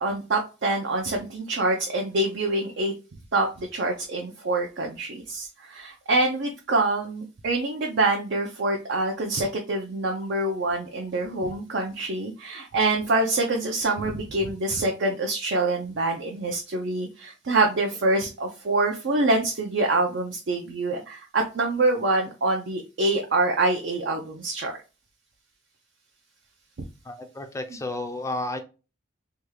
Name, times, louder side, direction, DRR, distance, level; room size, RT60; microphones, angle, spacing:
voice 1, 0.0-2.9 3.3-24.7, right 2 dB, 60° right, 2 dB, 0.5 m, -25 dB
voice 2, 27.1-28.6, left 2 dB, 15° left, 6 dB, 0.4 m, -32 dB
3.3 x 2.3 x 3.1 m, 0.32 s
head